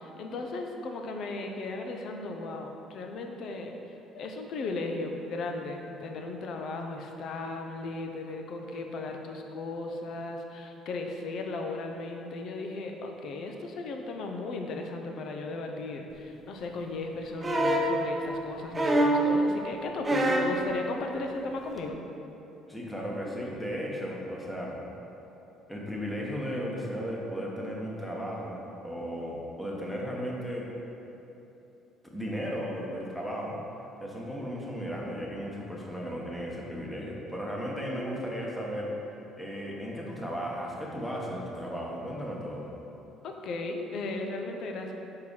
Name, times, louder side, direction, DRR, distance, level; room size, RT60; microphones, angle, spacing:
voice 1, 0.0-3.7 4.1-22.0 43.2-44.9, left 3 dB, 65° left, 3 dB, 0.7 m, -36 dB
sound 1, 17.4-18.0 18.7-19.3 20.0-20.6 21.8-21.9, right 1 dB, 20° right, 0.7 m, -24 dB
voice 2, 22.7-24.8 25.7-30.7 32.0-33.6 34.0-38.9 39.4-42.7, equal, 5° left, -3 dB, 1.2 m, -35 dB
4.8 x 4.6 x 5.4 m, 3.0 s
supercardioid pair, 90°, 0 cm